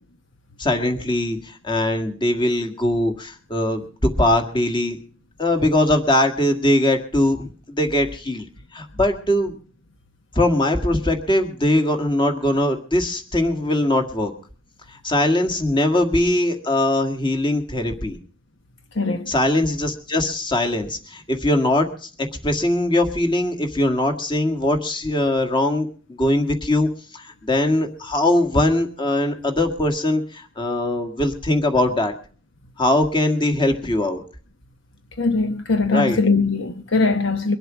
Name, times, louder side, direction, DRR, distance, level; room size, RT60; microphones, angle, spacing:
voice 1, 0.6-5.0 5.4-8.5 8.7-9.5 10.4-14.3 15.0-18.2 19.3-22.1 22.4-32.1 32.8-34.2 35.9-36.2, left 1 dB, 25° left, 1.9 m, -21 dB
voice 2, 18.9-19.3 35.2-37.6, left 3 dB, 60° left, 1.1 m, -21 dB
23.0 x 8.0 x 6.2 m
head